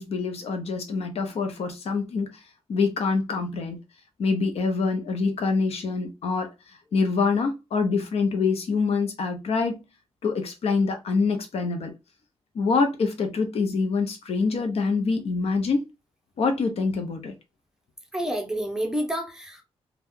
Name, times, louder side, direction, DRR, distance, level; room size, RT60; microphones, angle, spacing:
voice 1, 0.0-2.3 2.7-3.8 4.2-6.5 6.9-9.8 10.2-11.9 12.5-15.8 16.4-17.3, left 4 dB, 75° left, 0.7 m, -25 dB
voice 2, 18.1-19.6, equal, 5° right, 0.7 m, -29 dB
2.7 x 2.4 x 3.5 m
wide cardioid pair, 150°, 10 cm